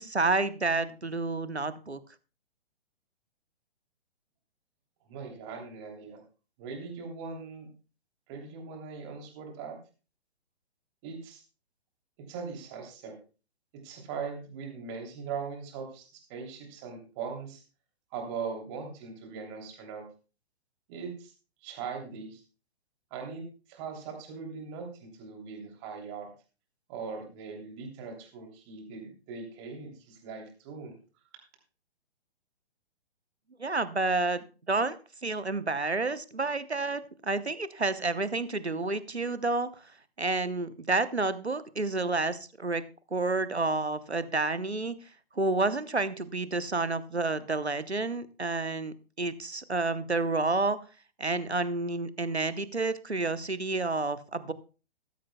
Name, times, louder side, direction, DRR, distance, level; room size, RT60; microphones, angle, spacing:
voice 1, 0.0-2.0 33.6-39.7 40.2-42.8 43.1-45.0 45.3-50.8 51.2-54.5, right 3 dB, 90° right, 15 dB, 1.0 m, -30 dB
voice 2, 5.1-6.2 6.6-7.7 8.3-9.8 11.0-11.4 12.3-13.2 13.7-17.6 18.1-20.0 20.9-21.3 21.6-22.4 23.1-26.3 26.9-30.9, right 5 dB, 25° right, 2 dB, 3.0 m, -40 dB
14.5 x 13.5 x 2.2 m, 0.34 s
figure-of-eight pair, 125°, 32 cm